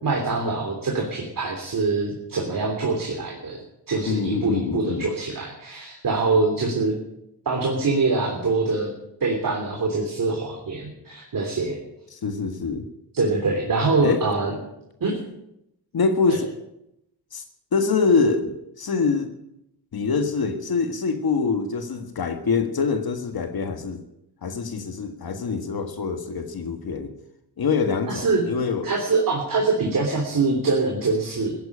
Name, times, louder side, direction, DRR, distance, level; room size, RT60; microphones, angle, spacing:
voice 1, 0.0-3.6 3.9-6.9 7.4-8.9 9.2-11.8 13.1-14.5 15.0-15.1 28.1-28.4 28.8-31.5, right 3 dB, 50° right, -1 dB, 3.4 m, -24 dB
voice 2, 4.1-5.1 12.1-12.9 14.0-14.3 15.9-16.5 17.3-17.4 17.7-19.3 19.9-24.0 24.4-27.1 27.6-28.9, left 4 dB, 60° left, 6 dB, 1.7 m, -24 dB
15.5 x 10.5 x 8.6 m, 0.82 s
cardioid pair, 95°, 42 cm